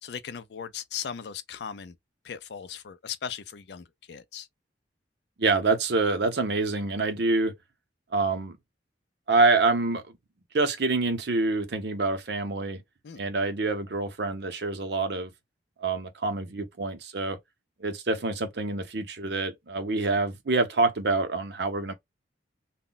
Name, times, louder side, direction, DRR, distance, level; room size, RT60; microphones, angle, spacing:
voice 1, 0.0-1.9 2.2-4.5 13.0-13.2, left 8 dB, 60° left, 0.4 m, -38 dB
voice 2, 5.4-7.5 8.1-8.6 9.3-10.0 10.5-12.8 13.2-15.3 15.8-17.4 17.8-21.9, right 3 dB, 60° right, 0.6 m, -26 dB
2.2 x 2.1 x 3.7 m
head